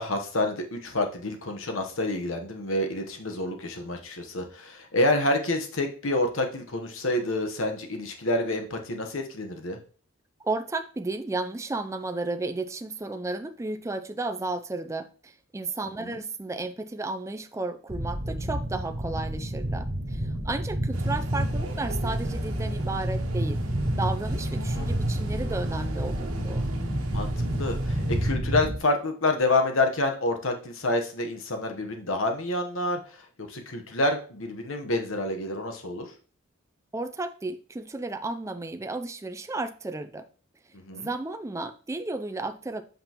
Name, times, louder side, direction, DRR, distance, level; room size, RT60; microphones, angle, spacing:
voice 1, 0.0-9.8 16.0-16.2 24.7-25.3 27.1-33.2 33.5-36.1 40.9-41.1, left 2 dB, 65° left, 5 dB, 1.1 m, -28 dB
voice 2, 10.4-23.6 24.0-26.7 36.9-40.2 40.9-42.8, right 2 dB, 15° right, 9 dB, 0.3 m, -33 dB
sound 1, 17.9-28.8, right 1 dB, 45° right, 2.0 m, -29 dB
sound 2, 20.9-28.3, right 2 dB, 80° right, 1.3 m, -42 dB
7.9 x 5.2 x 3.0 m, 0.41 s
head